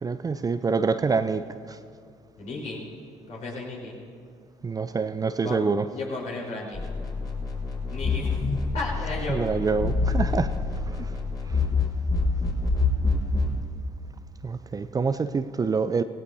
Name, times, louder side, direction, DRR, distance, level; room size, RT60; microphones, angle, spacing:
voice 1, 0.0-1.8 4.6-5.9 9.3-10.5 10.8-11.2 11.5-11.7 14.4-16.0, right 4 dB, 25° right, 11 dB, 0.5 m, -26 dB
voice 2, 2.4-2.8 3.3-4.0 5.4-5.6 5.9-6.8 7.9-8.4 8.7-9.4, left 3 dB, 55° left, -3 dB, 4.4 m, -34 dB
sound 1, 6.7-13.6, left 3 dB, 25° left, 3.7 m, -26 dB
18.0 x 17.0 x 2.8 m, 2.2 s
hypercardioid pair, 60°, 14 cm